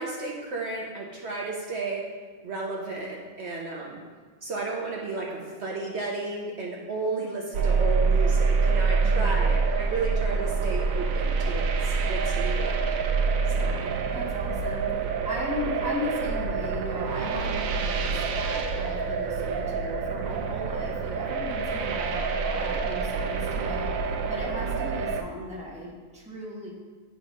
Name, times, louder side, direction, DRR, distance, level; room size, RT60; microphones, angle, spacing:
voice 1, 0.0-2.1 2.4-4.0 4.4-13.1 13.5-13.8, right 3 dB, 55° right, -2 dB, 1.0 m, -33 dB
sound 1, 7.5-25.2, right 4 dB, 80° right, 1.0 m, -26 dB
voice 2, 9.0-9.6 13.5-26.7, left 1 dB, 5° right, -4 dB, 1.1 m, -37 dB
9.0 x 3.7 x 5.1 m, 1.5 s
omnidirectional pair, 1.4 m